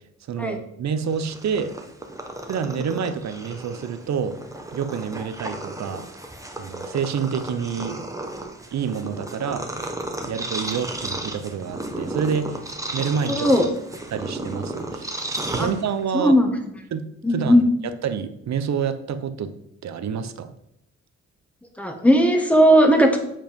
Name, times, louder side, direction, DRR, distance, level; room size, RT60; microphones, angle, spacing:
voice 1, 0.3-1.7 2.5-4.4 4.7-6.1 6.6-8.0 8.7-9.7 10.2-12.6 12.9-13.5 14.1-16.4 16.9-17.6 18.0-19.5 19.8-20.5, right 7 dB, 65° right, 11 dB, 0.9 m, -28 dB
Purr, 1.0-16.2, right 2 dB, 10° right, 1.1 m, -34 dB
voice 2, 13.3-13.6 15.6-15.7 16.1-16.6 17.2-17.6 21.8-23.2, equal, 5° left, 3 dB, 1.5 m, -17 dB
7.1 x 5.3 x 5.3 m, 0.78 s
cardioid pair, 90°, 30 cm